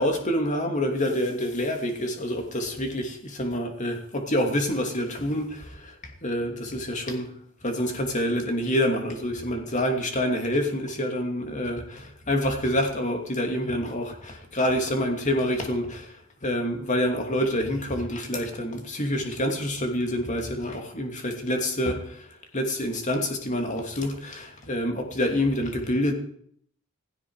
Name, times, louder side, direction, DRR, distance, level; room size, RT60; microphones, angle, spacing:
voice 1, 0.0-7.3 7.6-16.1 16.4-22.3 22.5-26.1, equal, 35° left, 4 dB, 2.8 m, -27 dB
16.5 x 16.0 x 4.9 m, 0.65 s
head